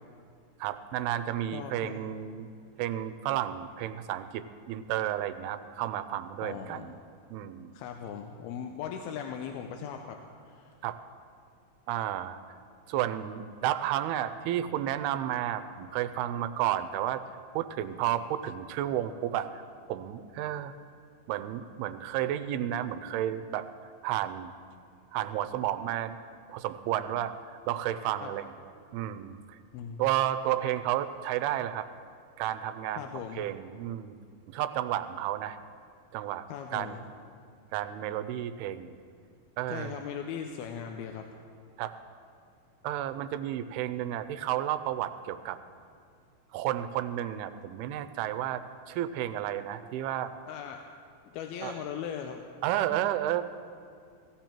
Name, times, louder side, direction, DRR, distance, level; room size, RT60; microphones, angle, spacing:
voice 1, 0.6-2.5 2.8-7.0 7.3-7.7 10.8-11.0 11.9-12.4 12.9-17.2 17.5-19.6 19.9-20.7 21.3-23.7 24.0-24.5 25.1-26.2 26.5-29.6 30.0-31.9 32.4-33.1 33.4-34.2 34.5-35.6 36.1-37.1 37.7-39.0 39.6-40.0 41.8-42.0 42.8-45.6 46.5-50.3 51.6-51.8 52.6-53.4, right 12 dB, 85° right, 11 dB, 2.5 m, -32 dB
voice 2, 1.5-2.1 6.4-6.9 7.7-10.2 10.5-10.7 28.2-28.3 29.7-30.0 33.0-33.4 36.5-37.0 39.7-41.3 50.5-50.8 51.3-52.4, left 8 dB, 85° left, 4 dB, 2.6 m, -39 dB
16.5 x 15.5 x 4.5 m, 2.3 s
omnidirectional pair, 4.5 m